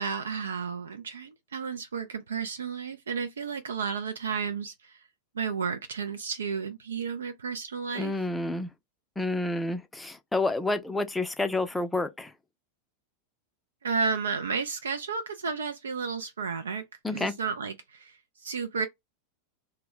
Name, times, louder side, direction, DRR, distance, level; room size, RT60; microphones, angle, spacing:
voice 1, 0.0-5.0 5.3-8.2 13.8-16.8 17.1-18.9, right 5 dB, 70° right, 0.4 m, -32 dB
voice 2, 8.0-8.7 9.2-12.3 17.0-17.3, left 2 dB, 5° left, 0.5 m, -29 dB
2.1 x 2.1 x 3.7 m
figure-of-eight pair, 90°, 0 cm